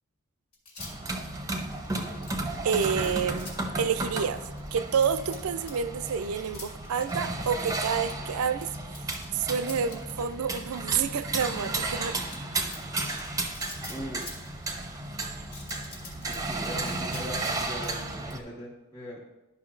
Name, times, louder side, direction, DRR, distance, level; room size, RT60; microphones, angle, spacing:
sound 1, 0.5-1.1 1.7-3.6 4.2-5.7 6.1-7.1 7.6-11.8 12.2-14.8 15.4-17.5 17.8-18.3, left 3 dB, 90° left, 2.6 m, -46 dB
sound 2, 0.8-18.4, right 2 dB, 15° right, 0.6 m, -34 dB
voice 1, 2.6-3.5 3.8-4.4 4.7-8.7 9.3-12.2, right 7 dB, 75° right, 12 dB, 0.4 m, -28 dB
voice 2, 13.9-14.3 16.2-19.2, equal, 15° left, -9 dB, 1.5 m, -40 dB
12.5 x 5.5 x 2.5 m, 1.0 s
head